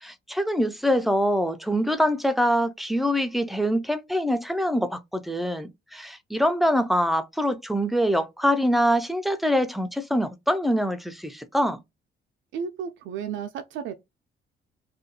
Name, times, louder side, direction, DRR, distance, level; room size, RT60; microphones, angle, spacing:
voice 1, 0.0-11.8, equal, ahead, 0.4 m, -24 dB
voice 2, 12.5-13.9, right 7 dB, 75° right, 0.4 m, -33 dB
2.4 x 2.2 x 2.7 m
cardioid pair, 90°, 20 cm